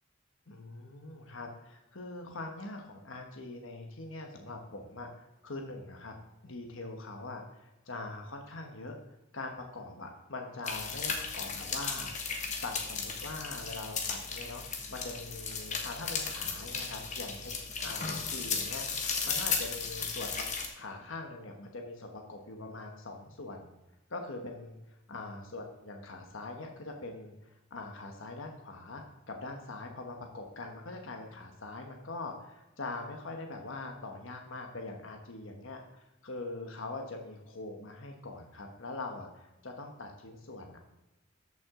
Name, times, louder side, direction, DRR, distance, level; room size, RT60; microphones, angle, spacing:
voice 1, 0.5-6.1 6.4-14.6 14.9-17.5 17.8-20.5 20.8-23.7 24.1-40.8, left 2 dB, 70° left, 3 dB, 1.2 m, -43 dB
sound 1, 10.7-20.7, left 5 dB, 35° left, 1.2 m, -35 dB
13.5 x 6.1 x 3.7 m, 0.98 s
head